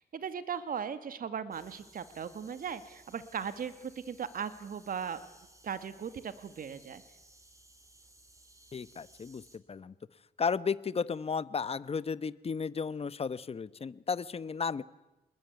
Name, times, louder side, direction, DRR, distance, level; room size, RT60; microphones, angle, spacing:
voice 1, 0.0-5.2 5.6-7.0, right 7 dB, 60° right, 12 dB, 2.0 m, -38 dB
sound 1, 1.5-9.6, right 1 dB, 20° right, 5.1 m, -59 dB
voice 2, 8.7-9.4 9.7-9.9 10.4-14.8, left 5 dB, 40° left, 16 dB, 1.1 m, -34 dB
27.0 x 21.0 x 9.5 m, 1.0 s
cardioid pair, 70°, 16 cm